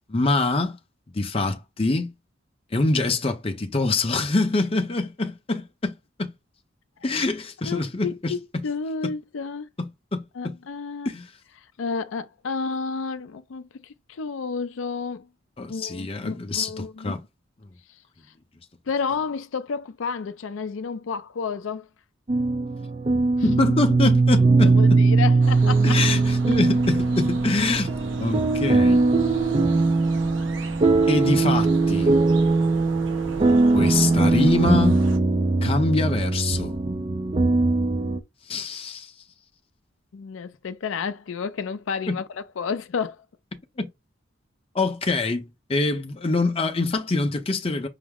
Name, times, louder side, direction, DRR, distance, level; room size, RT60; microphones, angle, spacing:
voice 1, 0.1-0.8 1.1-2.1 2.7-6.3 7.0-8.6 9.0-9.1 9.8-10.6 11.0-11.3 15.6-17.2 23.4-25.0 25.8-27.9 28.2-29.0 31.1-32.2 33.7-35.0 35.6-36.8 38.5-39.1 42.1-42.2 43.8-43.9 44.7-47.9, left 3 dB, 30° left, 0.6 m, -25 dB
voice 2, 7.6-9.7 10.4-11.1 11.8-15.3 15.7-17.2 18.9-21.9 24.6-26.0 40.1-43.2, left 5 dB, 85° left, 0.4 m, -31 dB
sound 1, 22.3-38.2, right 3 dB, 30° right, 0.4 m, -20 dB
sound 2, 25.4-35.2, right 2 dB, 75° right, 0.8 m, -39 dB
5.7 x 2.0 x 3.6 m
head